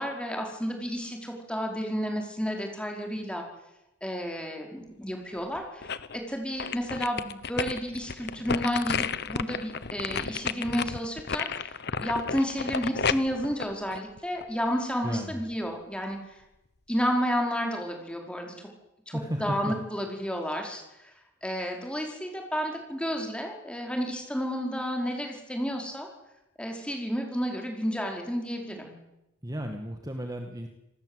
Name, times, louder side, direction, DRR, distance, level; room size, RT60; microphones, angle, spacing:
voice 1, 0.0-3.4 4.0-16.4 16.9-18.7 19.1-20.8 21.4-26.1 26.6-29.0, equal, 5° left, 2 dB, 4.9 m, -31 dB
sound 1, 5.3-6.2 6.6-14.7 15.1-15.2, left 6 dB, 55° left, 1.0 m, -32 dB
voice 2, 15.0-15.4 19.1-19.7 29.4-30.7, equal, 20° right, 4 dB, 2.1 m, -34 dB
27.5 x 19.5 x 8.3 m, 0.90 s
head